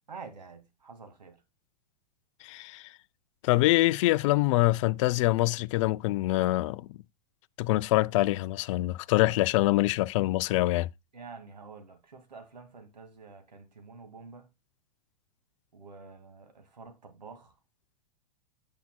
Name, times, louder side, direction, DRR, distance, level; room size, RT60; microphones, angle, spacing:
voice 1, 0.1-1.4 11.1-14.5 15.7-17.5, right 4 dB, 85° right, 2.1 m, -48 dB
voice 2, 2.4-2.9 3.4-6.9 7.6-10.9, left 18 dB, 50° left, 0.4 m, -25 dB
9.3 x 8.5 x 2.2 m
hypercardioid pair, 100°, 21 cm